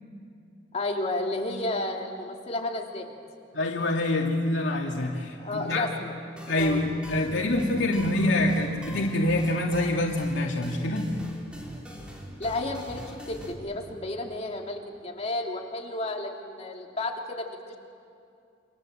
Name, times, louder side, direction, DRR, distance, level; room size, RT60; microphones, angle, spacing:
voice 1, 0.7-3.1 5.4-6.1 6.6-6.8 7.2-7.5 12.4-17.8, left 2 dB, 35° left, 1 dB, 3.0 m, -32 dB
voice 2, 3.5-5.9 6.5-11.1, left 1 dB, 90° left, 0 dB, 2.6 m, -26 dB
sound 1, 6.4-13.5, equal, 5° right, 3.8 m, -42 dB
28.5 x 26.0 x 7.6 m, 2.4 s
head